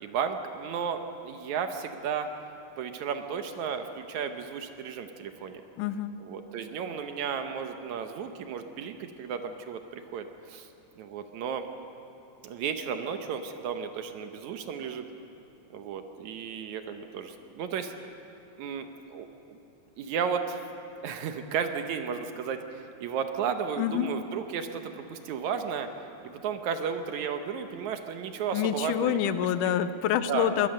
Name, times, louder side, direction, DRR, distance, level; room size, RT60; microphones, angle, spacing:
voice 1, 0.0-2.3 2.8-5.6 6.2-10.7 11.0-11.7 12.4-15.1 15.7-17.9 18.6-19.6 20.0-20.6 21.0-25.9 26.2-29.2 29.6-29.8 30.3-30.7, right 7 dB, 70° right, 7 dB, 2.1 m, -34 dB
voice 2, 5.8-6.1 23.8-24.1 28.5-30.7, left 10 dB, 80° left, 12 dB, 2.2 m, -27 dB
21.5 x 19.0 x 6.5 m, 2.9 s
omnidirectional pair, 3.7 m